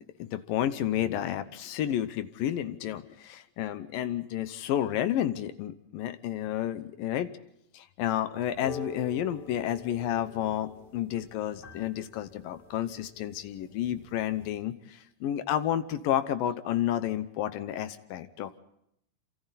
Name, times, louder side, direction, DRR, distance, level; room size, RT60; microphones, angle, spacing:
voice 1, 0.2-7.3 7.7-18.6, left 11 dB, 70° left, 12 dB, 2.5 m, -31 dB
sound 1, 8.5-14.5, left 3 dB, 30° left, 2.2 m, -47 dB
27.5 x 27.0 x 4.1 m, 0.75 s
omnidirectional pair, 4.6 m